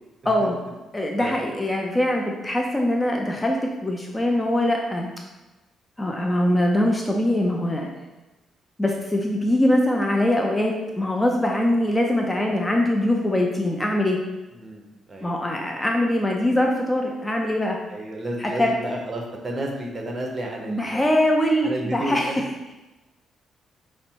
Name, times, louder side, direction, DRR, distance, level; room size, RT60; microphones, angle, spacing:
voice 1, 0.2-0.6 0.9-5.1 6.0-7.9 8.8-14.2 15.2-17.8 18.4-18.7 20.7-22.3, left 1 dB, 15° left, 1 dB, 0.5 m, -22 dB
voice 2, 14.5-15.3 17.9-21.1 21.6-22.4, right 1 dB, 35° right, 1 dB, 0.9 m, -31 dB
4.9 x 2.1 x 4.5 m, 1.1 s
cardioid pair, 90°, 0 cm